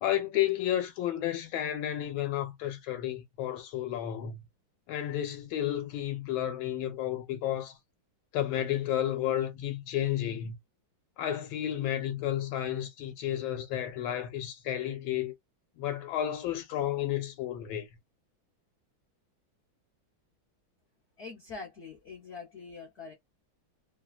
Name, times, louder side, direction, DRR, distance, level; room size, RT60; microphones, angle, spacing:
voice 1, 0.0-4.4 4.9-7.8 8.3-10.5 11.2-15.3 15.8-17.9, left 11 dB, 85° left, 1.4 m, -32 dB
voice 2, 21.2-23.1, left 4 dB, 55° left, 0.8 m, -44 dB
3.1 x 2.2 x 2.3 m
omnidirectional pair, 2.1 m